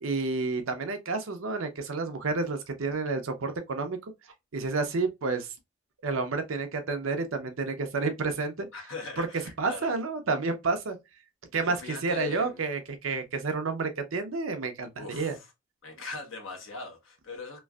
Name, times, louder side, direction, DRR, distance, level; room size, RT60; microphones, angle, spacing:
voice 1, 0.0-4.0 4.5-5.5 6.0-8.7 9.2-9.3 9.6-11.0 11.5-15.4, right 3 dB, 85° right, 0.6 m, -30 dB
voice 2, 8.7-9.9 11.6-12.6 15.0-15.4 15.8-17.6, left 4 dB, 85° left, 1.0 m, -40 dB
3.1 x 2.5 x 2.3 m
head